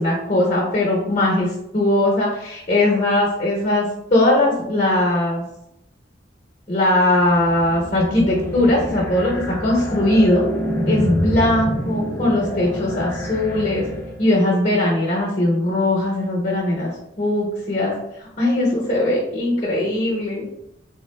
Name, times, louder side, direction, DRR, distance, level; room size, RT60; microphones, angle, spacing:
voice 1, 0.0-5.4 6.7-10.4 10.9-13.9 14.2-16.9 17.2-17.9 18.2-20.5, left 1 dB, 40° left, -2 dB, 0.8 m, -19 dB
sound 1, 7.0-14.5, equal, 10° left, 0.4 m, -28 dB
3.7 x 3.4 x 2.2 m, 0.81 s
head